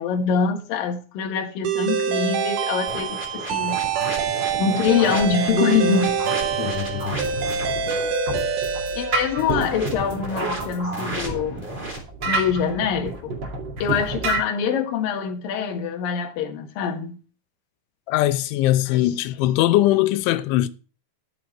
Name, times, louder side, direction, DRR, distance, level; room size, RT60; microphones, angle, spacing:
voice 1, 0.0-3.8 4.6-6.2 6.6-6.9 9.0-11.7 12.2-13.4 13.8-17.2 18.9-19.1, left 6 dB, 60° left, 2.9 m, -24 dB
sound 1, 1.6-9.8, right 6 dB, 65° right, 2.1 m, -25 dB
sound 2, 2.9-8.1 9.5-12.0, right 2 dB, 15° right, 3.3 m, -34 dB
voice 2, 6.6-7.2 18.1-20.7, left 15 dB, 90° left, 3.1 m, -21 dB
sound 3, 6.9-14.4, right 3 dB, 35° right, 2.0 m, -30 dB
13.0 x 8.0 x 4.4 m
omnidirectional pair, 5.4 m